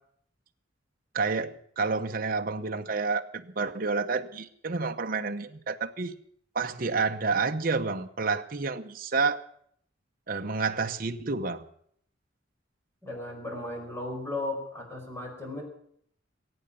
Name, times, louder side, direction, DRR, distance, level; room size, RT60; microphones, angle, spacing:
voice 1, 1.1-6.2 6.5-9.4 10.3-11.6, right 4 dB, 45° right, 6 dB, 0.8 m, -29 dB
voice 2, 13.0-15.6, left 2 dB, 15° left, 1 dB, 5.1 m, -35 dB
22.0 x 8.8 x 7.2 m, 0.66 s
head